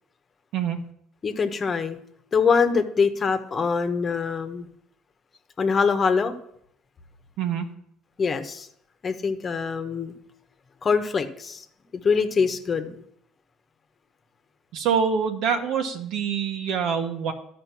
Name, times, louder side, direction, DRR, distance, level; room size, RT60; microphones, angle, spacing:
voice 1, 1.2-2.0 2.3-4.7 5.6-6.4 8.2-8.7 9.0-10.1 10.8-11.6 11.9-13.0, left 5 dB, 35° left, 8 dB, 1.1 m, -24 dB
voice 2, 14.7-17.3, right 7 dB, 70° right, 5 dB, 1.4 m, -25 dB
12.0 x 5.1 x 6.0 m, 0.72 s
supercardioid pair, 70°, 0 cm